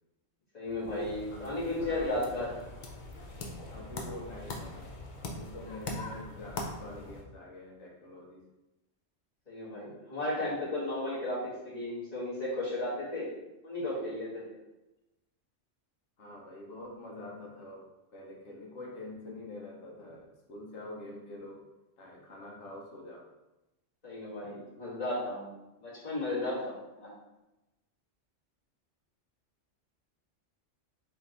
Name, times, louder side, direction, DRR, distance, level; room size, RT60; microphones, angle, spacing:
voice 1, 0.5-2.5 9.5-13.3 13.6-14.3 24.0-25.5 25.8-26.6 27.0-27.1, left 1 dB, 35° left, -9 dB, 1.7 m, -34 dB
sound 1, 0.7-7.2, left 2 dB, 55° left, 0.6 m, -42 dB
voice 2, 1.3-2.5 3.7-4.9 5.2-8.4 16.2-17.8 18.1-21.6 22.0-23.2, left 2 dB, 70° left, -1 dB, 1.1 m, -46 dB
3.6 x 2.9 x 3.8 m, 1.0 s
omnidirectional pair, 1.3 m